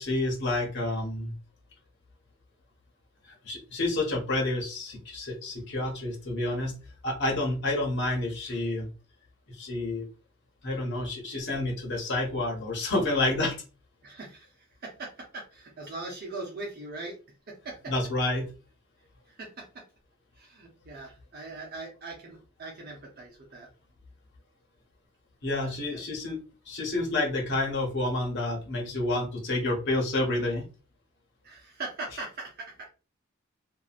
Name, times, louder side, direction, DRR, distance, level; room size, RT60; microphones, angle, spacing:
voice 1, 0.0-1.3 3.4-6.8 7.0-8.9 9.5-10.0 10.6-13.6 17.9-18.5 25.4-26.4 26.7-30.7, left 2 dB, 55° left, -1 dB, 1.2 m, -29 dB
voice 2, 14.0-17.2 17.5-17.9 19.3-19.8 20.4-23.7 25.6-26.0 31.4-32.9, right 3 dB, 45° right, -2 dB, 0.8 m, -41 dB
2.8 x 2.6 x 2.5 m, 0.33 s
head